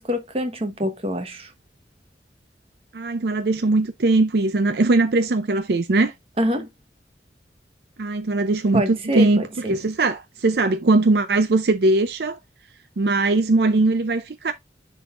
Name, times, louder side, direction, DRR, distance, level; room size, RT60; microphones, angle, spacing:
voice 1, 0.0-1.5 6.4-6.7 8.7-9.7, equal, 35° right, 1.1 m, -25 dB
voice 2, 2.9-6.1 8.0-12.4 13.0-14.5, right 2 dB, 65° right, 0.5 m, -20 dB
10.0 x 4.0 x 2.4 m
head